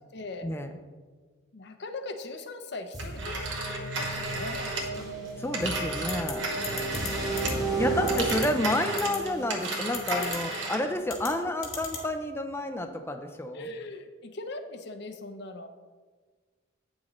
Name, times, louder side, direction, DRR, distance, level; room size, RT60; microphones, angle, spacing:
voice 1, 0.1-0.5 1.5-3.5 3.9-5.0 6.5-7.0 7.9-8.2 10.2-10.4 13.5-15.7, left 2 dB, 55° left, 7 dB, 0.6 m, -40 dB
sound 1, 2.9-10.8, right 3 dB, 15° right, 1.1 m, -34 dB
Telephone, 3.0-7.7 8.0-10.9, right 2 dB, 60° right, 1.1 m, -34 dB
voice 2, 5.4-6.5 7.8-13.7, left 1 dB, 10° left, 7 dB, 0.4 m, -30 dB
sound 2, 6.1-6.3 6.6-7.1 7.4-7.5 8.1-8.5 9.0-9.2 9.9-10.4 11.1-11.3 11.6-12.0, left 8 dB, 75° left, 1.4 m, -35 dB
8.6 x 6.3 x 3.1 m, 1.4 s
head